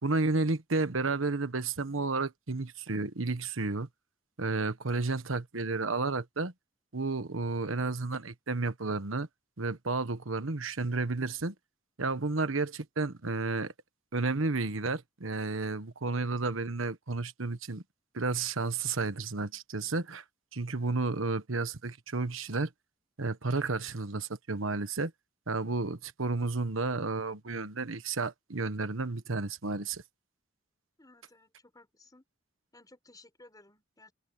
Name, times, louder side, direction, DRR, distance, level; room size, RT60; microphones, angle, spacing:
voice 1, 0.0-3.9 4.4-6.5 6.9-9.3 9.6-11.5 12.0-13.7 14.1-17.8 18.1-20.2 20.5-22.7 23.2-25.1 25.5-30.0, right 3 dB, 80° right, 1.3 m, -32 dB
voice 2, 31.0-32.2 32.7-34.1, left 2 dB, 20° left, 5.1 m, -57 dB
head